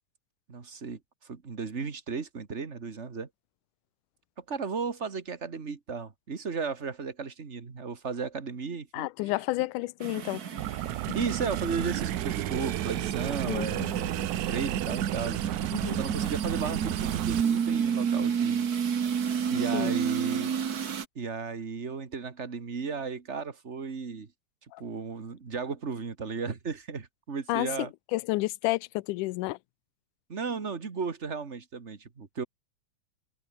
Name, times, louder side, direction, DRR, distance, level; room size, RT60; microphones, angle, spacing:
voice 1, 0.5-3.3 4.4-9.1 11.1-15.4 15.9-18.7 19.5-20.5 21.1-24.3 24.8-27.9 30.3-32.4, right 5 dB, 30° right, 1.6 m, -35 dB
voice 2, 8.9-10.4 11.1-11.2 13.5-13.9 15.7-16.0 19.7-19.9 24.7-24.8 27.5-29.6, left 20 dB, 85° left, 2.1 m, -31 dB
sound 1, 10.0-21.0, right 7 dB, 45° right, 1.3 m, -31 dB
sound 2, 10.6-17.4, right 19 dB, 80° right, 1.8 m, -33 dB
omnidirectional pair, 3.5 m